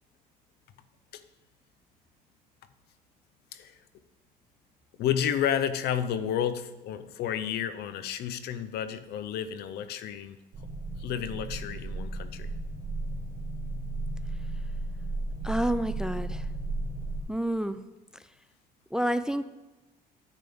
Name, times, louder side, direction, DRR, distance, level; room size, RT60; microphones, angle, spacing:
voice 1, 5.0-10.4 11.0-12.5, left 9 dB, 75° left, 13 dB, 0.6 m, -31 dB
sound 1, 10.5-17.2, right 2 dB, 50° right, 2.2 m, -34 dB
voice 2, 15.4-16.5 17.3-17.8 18.1-18.2 18.9-19.4, right 1 dB, 5° right, 13 dB, 0.3 m, -29 dB
9.8 x 8.5 x 3.5 m, 1.1 s
cardioid pair, 110°, 17 cm